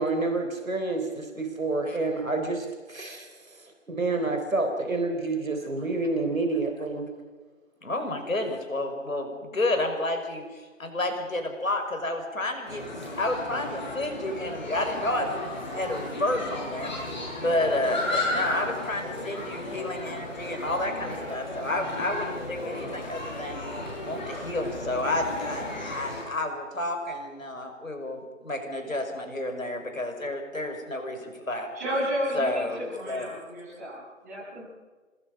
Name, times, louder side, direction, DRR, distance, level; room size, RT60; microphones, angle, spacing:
voice 1, 0.0-7.1, right 3 dB, 85° right, 5 dB, 3.9 m, -29 dB
voice 2, 7.8-12.8 13.2-15.3 15.7-16.9 17.4-23.6 24.0-31.7 32.3-32.8 33.1-33.3, left 1 dB, 80° left, 5 dB, 5.8 m, -30 dB
sound 1, 12.7-26.2, left 2 dB, 35° left, 7.3 m, -34 dB
voice 3, 31.7-34.6, equal, 15° right, -9 dB, 7.3 m, -32 dB
27.0 x 21.0 x 5.4 m, 1.4 s
figure-of-eight pair, 175°, 39 cm